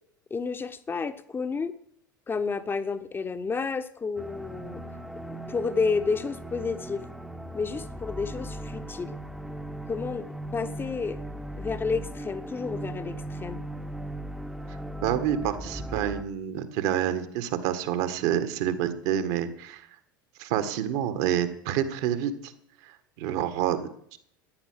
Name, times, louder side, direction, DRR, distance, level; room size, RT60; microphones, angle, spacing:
voice 1, 0.3-1.7 2.3-4.8 5.3-7.0 7.5-9.1 9.9-10.3 10.5-11.2 11.6-13.6, left 4 dB, 20° left, 11 dB, 1.0 m, -30 dB
sound 1, 4.2-16.2, right 1 dB, 5° right, 1.0 m, -38 dB
voice 2, 15.0-19.8 20.4-22.5 23.2-23.9, right 10 dB, 55° right, 10 dB, 1.7 m, -28 dB
14.0 x 10.5 x 6.4 m, 0.66 s
figure-of-eight pair, 75°, 11 cm